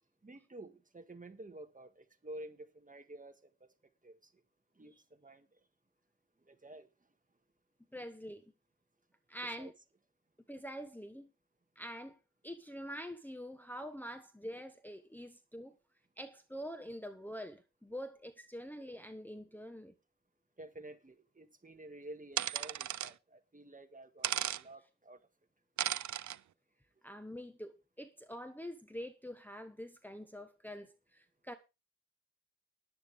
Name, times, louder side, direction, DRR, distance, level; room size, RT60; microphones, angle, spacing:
voice 1, 0.2-3.7 4.0-4.3 4.8-5.6 6.4-6.9 9.6-9.7 20.6-25.3, right 1 dB, 25° right, 1.7 m, -51 dB
voice 2, 7.9-8.4 9.3-9.7 10.5-11.3 11.8-12.2 12.4-15.7 16.2-19.9 27.0-31.5, equal, 5° left, 1.2 m, -45 dB
sound 1, 22.4-23.1 24.2-24.6 25.8-26.4, right 11 dB, 75° right, 0.5 m, -35 dB
13.5 x 10.5 x 3.6 m
wide cardioid pair, 105°, 30 cm